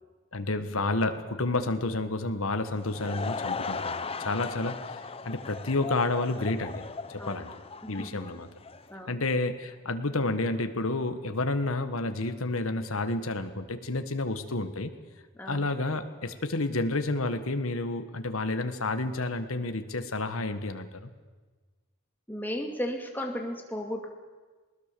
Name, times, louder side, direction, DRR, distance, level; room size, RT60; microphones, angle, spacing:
voice 1, 0.3-6.8 7.1-7.5 7.9-8.5 9.1-14.9 15.5-21.1, left 2 dB, 75° left, 9 dB, 1.5 m, -30 dB
Laughter / Crowd, 2.6-8.9, left 4 dB, 25° left, 0.7 m, -37 dB
voice 2, 7.8-8.2 8.9-9.2 15.3-15.8 22.3-24.1, equal, 10° left, 2 dB, 2.4 m, -35 dB
20.0 x 20.0 x 6.9 m, 1.4 s
head